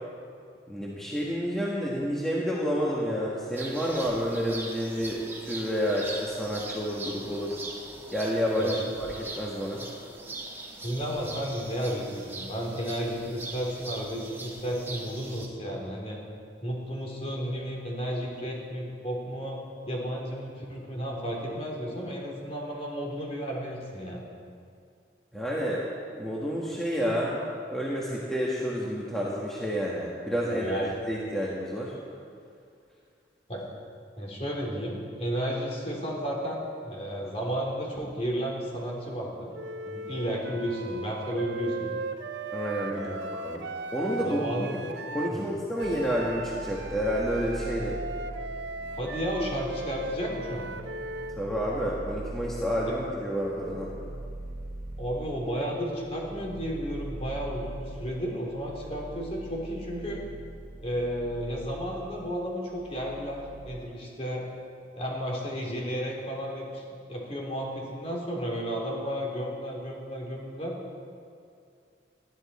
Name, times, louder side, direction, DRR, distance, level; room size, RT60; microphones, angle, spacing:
voice 1, 0.7-7.6 8.1-9.8 25.3-25.8 26.2-27.4 27.7-31.9 42.5-43.6 43.9-44.8 45.1-48.0 51.4-53.9, equal, ahead, -6 dB, 1.5 m, -29 dB
sound 1, 3.5-15.5, right 2 dB, 15° right, 1.5 m, -41 dB
voice 2, 10.8-16.2 16.6-19.6 19.9-24.2 30.4-30.9 33.5-33.6 34.1-39.5 39.8-42.0 42.9-43.3 44.2-44.9 45.3-45.4 48.9-50.7 55.0-60.2 60.8-64.4 64.9-66.8 67.1-70.7, equal, 35° left, -2 dB, 3.2 m, -33 dB
Wind instrument woodwind instrument, 39.5-45.4 45.8-51.4, right 4 dB, 65° right, 0.7 m, -38 dB
sound 2, 45.8-63.8, right 1 dB, 50° right, 1.2 m, -42 dB
19.5 x 13.0 x 4.3 m, 2.4 s
head